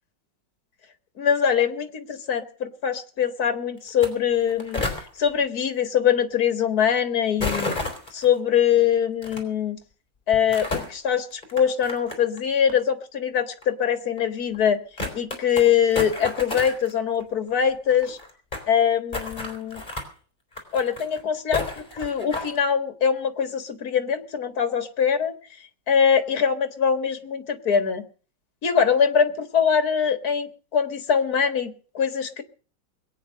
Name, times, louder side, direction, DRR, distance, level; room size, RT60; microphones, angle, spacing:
voice 1, 1.2-4.8 5.2-7.7 8.1-9.8 10.3-14.8 15.1-18.2 18.7-19.8 20.7-21.6 21.9-25.3 25.9-28.0 28.6-32.4, left 7 dB, 50° left, 9 dB, 2.1 m, -23 dB
sound 1, 3.9-4.1 4.3-5.0 7.4-8.2 9.2-9.4 10.3-10.9 11.4-12.4 12.7-12.8 13.6-13.7 14.2-14.3 14.5-14.6 15.0-15.6 15.9-16.9 17.2-17.3 17.5-17.6 17.7-18.7 19.1-20.1 20.5-21.2 21.5-22.6, left 3 dB, 25° left, 4.2 m, -31 dB
21.5 x 9.2 x 6.5 m, 0.42 s
omnidirectional pair, 2.1 m